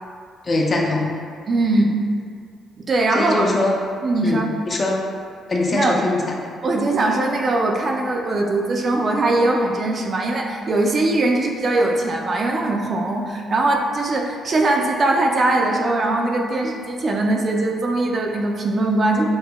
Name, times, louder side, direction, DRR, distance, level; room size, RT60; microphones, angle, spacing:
voice 1, 0.4-1.2 3.1-3.8 4.2-4.4 4.7-5.0 5.5-6.2, left 2 dB, 40° left, -1 dB, 0.5 m, -21 dB
voice 2, 1.5-2.0 2.8-3.5 4.0-4.5 5.7-6.0 6.6-19.3, right 2 dB, 45° right, 0 dB, 0.4 m, -21 dB
5.2 x 2.1 x 2.2 m, 2.2 s
cardioid pair, 90°, 0 cm